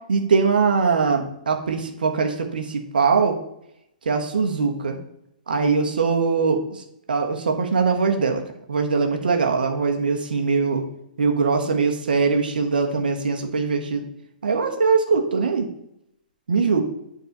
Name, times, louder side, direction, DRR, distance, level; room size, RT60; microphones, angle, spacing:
voice 1, 0.1-3.4 4.0-5.0 5.5-8.4 8.7-10.8 11.2-14.0 14.4-15.6 16.5-16.8, right 5 dB, 75° right, 4 dB, 1.2 m, -21 dB
7.9 x 4.0 x 6.5 m, 0.78 s
hypercardioid pair, 120°, 5 cm